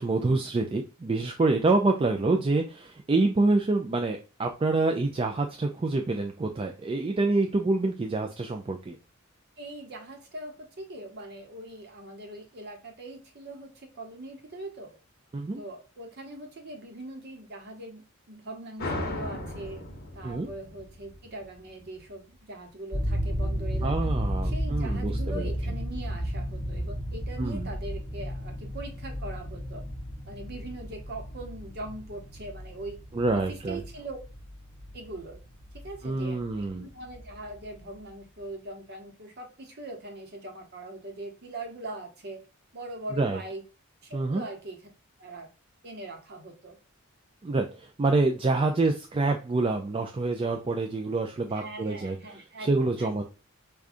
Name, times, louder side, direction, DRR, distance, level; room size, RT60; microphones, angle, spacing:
voice 1, 0.0-8.9 15.3-15.6 20.2-20.5 23.8-25.5 27.4-27.7 33.1-33.8 36.0-36.9 43.1-43.4 44.1-44.4 47.4-52.2 52.6-53.2, right 3 dB, 25° right, 3 dB, 0.3 m, -26 dB
voice 2, 9.6-15.0 15.6-19.8 20.1-24.1 24.4-29.8 30.3-33.0 33.3-34.2 34.9-35.4 35.7-42.5 42.7-43.6 44.0-44.8 45.2-45.5 45.8-46.8 51.5-53.2, right 2 dB, 50° right, 4 dB, 0.9 m, -41 dB
sound 1, 18.8-22.1, left 1 dB, 50° left, 0.9 m, -36 dB
sound 2, 22.9-37.8, equal, 10° left, 0.9 m, -33 dB
4.8 x 2.3 x 2.5 m, 0.32 s
head